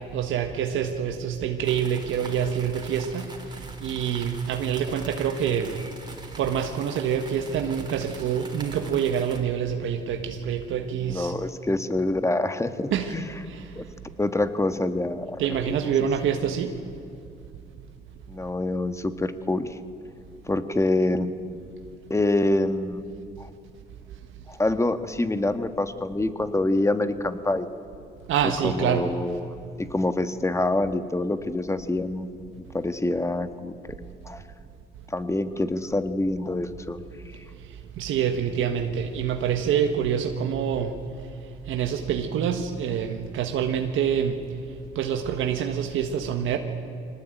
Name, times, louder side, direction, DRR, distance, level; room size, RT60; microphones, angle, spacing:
voice 1, 0.1-3.3 3.8-5.7 6.4-11.3 12.9-13.1 13.5-13.6 15.4-16.7 28.3-29.1 38.0-40.9 41.7-44.3 44.9-46.6, right 8 dB, 85° right, 5 dB, 1.5 m, -26 dB
sound 1, 1.6-9.4, right 2 dB, 20° right, 3.7 m, -44 dB
voice 2, 11.0-13.2 13.7-13.8 14.2-15.4 15.6-15.8 18.3-19.8 20.4-21.3 22.1-23.0 23.4-23.5 24.5-27.7 28.6-29.6 29.9-32.3 32.7-33.7 34.2-34.4 35.1-37.0, left 2 dB, 15° left, 10 dB, 1.5 m, -26 dB
23.0 x 19.0 x 9.1 m, 2.5 s
cardioid pair, 90°, 20 cm